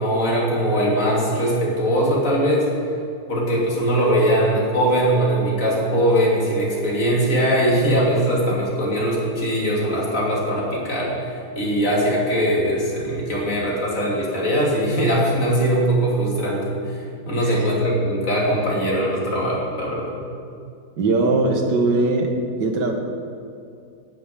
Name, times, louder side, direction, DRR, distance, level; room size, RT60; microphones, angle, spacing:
voice 1, 0.0-2.7 3.3-11.3 11.6-17.0 17.3-20.2, equal, 45° left, -4 dB, 3.2 m, -21 dB
voice 2, 17.4-17.7 21.0-22.3 22.6-22.9, right 3 dB, 65° right, 3 dB, 2.0 m, -20 dB
11.5 x 8.5 x 8.4 m, 2.4 s
omnidirectional pair, 2.0 m